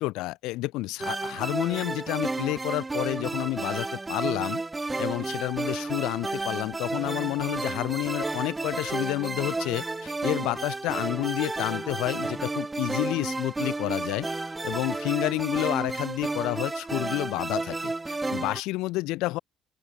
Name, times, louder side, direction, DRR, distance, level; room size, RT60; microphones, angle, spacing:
voice 1, 0.0-4.6 5.0-14.3 14.6-19.4, left 20 dB, 85° left, 1.9 m, -30 dB
sound 1, 1.0-18.6, right 3 dB, 15° right, 0.4 m, -32 dB
open air
cardioid pair, 95°, 0 cm